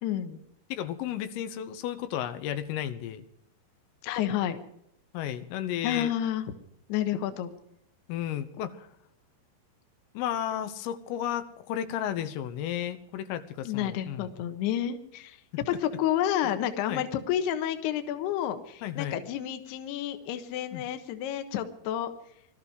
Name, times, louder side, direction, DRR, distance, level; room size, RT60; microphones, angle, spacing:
voice 1, 0.0-0.4 4.0-4.6 5.8-6.5 6.9-7.5 13.6-15.4 15.7-22.1, left 11 dB, 70° left, 8 dB, 3.0 m, -30 dB
voice 2, 0.7-3.3 5.1-6.1 8.1-8.9 10.2-14.3 16.4-16.5 16.9-17.0 18.8-19.2 20.7-20.8, left 10 dB, 90° left, 10 dB, 3.8 m, -33 dB
21.0 x 13.5 x 4.9 m, 0.74 s
omnidirectional pair, 5.8 m